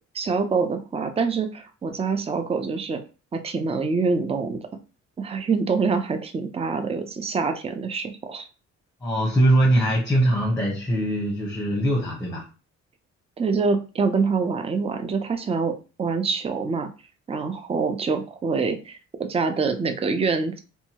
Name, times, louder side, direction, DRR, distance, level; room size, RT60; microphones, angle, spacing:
voice 1, 0.1-3.0 3.3-4.6 5.2-8.5 13.4-16.9 17.3-20.6, right 4 dB, 20° right, 7 dB, 0.4 m, -25 dB
voice 2, 9.0-12.4, right 1 dB, 10° left, -1 dB, 0.9 m, -22 dB
2.6 x 2.3 x 2.8 m, 0.33 s
cardioid pair, 90°, 30 cm